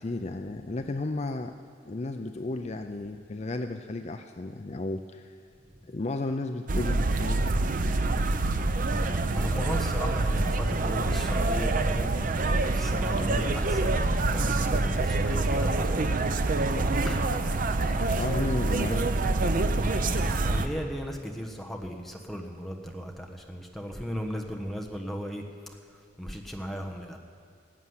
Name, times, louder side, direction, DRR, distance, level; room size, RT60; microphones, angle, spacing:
voice 1, 0.0-1.5 1.8-5.3 5.9-7.4 13.2-13.5 18.1-19.5, left 2 dB, 35° left, 6 dB, 0.5 m, -33 dB
sound 1, 6.7-20.7, right 2 dB, 45° right, 0.7 m, -26 dB
voice 2, 8.9-12.1 12.6-16.1 17.0-17.2 19.8-27.2, equal, ahead, 2 dB, 1.2 m, -36 dB
18.5 x 7.2 x 9.6 m, 2.2 s
head